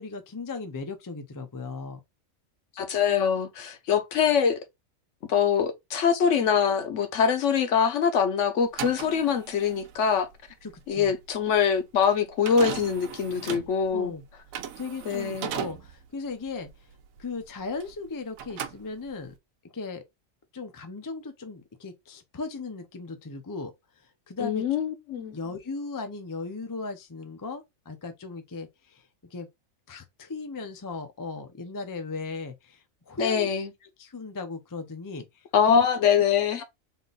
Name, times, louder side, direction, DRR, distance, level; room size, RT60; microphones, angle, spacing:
voice 1, 0.0-2.0 10.6-11.1 13.9-14.2 14.8-16.7 17.2-19.3 19.7-20.0 20.5-23.7 24.0-24.6 25.3-29.5 29.9-33.5 34.0-35.9, left 3 dB, 30° left, 0.3 m, -37 dB
voice 2, 2.8-4.6 5.3-10.3 10.9-14.1 15.1-15.5 24.4-25.3 33.2-33.7 35.5-36.6, left 7 dB, 65° left, 1.0 m, -24 dB
sound 1, 8.6-18.1 18.3-19.4, right 8 dB, 80° right, 1.0 m, -38 dB
3.7 x 2.5 x 3.9 m
omnidirectional pair, 1.4 m